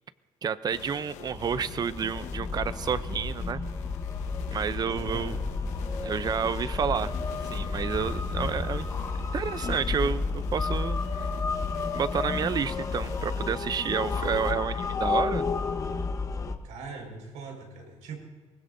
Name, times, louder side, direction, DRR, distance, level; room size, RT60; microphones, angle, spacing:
voice 1, 0.4-3.6 4.5-5.4 6.0-7.1 7.5-8.9 9.2-11.3 11.9-15.4, right 7 dB, 35° right, 15 dB, 0.6 m, -30 dB
sound 1, 0.7-14.5, left 8 dB, 85° left, 1.1 m, -46 dB
sound 2, 1.3-16.5, left 4 dB, 25° left, 1.0 m, -31 dB
sound 3, 2.6-5.5, right 3 dB, 55° right, 1.7 m, -48 dB
voice 2, 4.9-5.4 16.6-18.2, right 3 dB, 85° right, 1 dB, 5.0 m, -41 dB
24.0 x 20.0 x 2.7 m, 1.4 s
cardioid pair, 130°, 12 cm